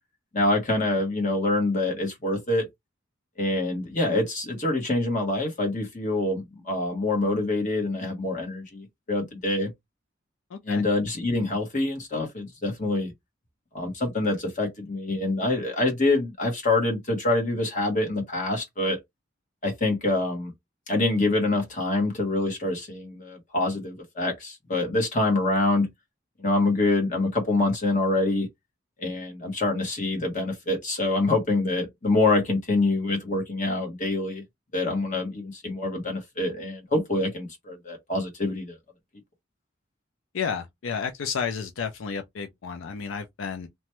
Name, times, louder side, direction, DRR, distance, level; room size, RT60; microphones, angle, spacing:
voice 1, 0.3-2.6 3.4-9.7 10.6-13.1 13.7-19.0 19.6-20.5 20.9-25.9 26.4-28.5 29.0-34.4 34.7-38.8, left 2 dB, 40° left, 1.2 m, -25 dB
voice 2, 10.5-10.8 40.3-43.7, left 6 dB, 80° left, 0.5 m, -31 dB
3.0 x 2.2 x 2.9 m
head